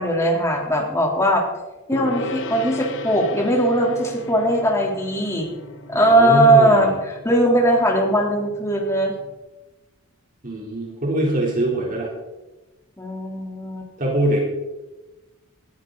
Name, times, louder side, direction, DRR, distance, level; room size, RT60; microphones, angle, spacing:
voice 1, 0.0-1.4 1.9-5.5 5.9-9.1 13.0-13.9, right 1 dB, 15° left, -1 dB, 3.6 m, -19 dB
Gong, 1.9-9.4, left 3 dB, 60° left, 1.5 m, -36 dB
voice 2, 5.9-7.0 10.4-12.1 14.0-14.4, right 1 dB, 40° right, -2 dB, 3.7 m, -23 dB
20.0 x 14.5 x 4.1 m, 1.1 s
head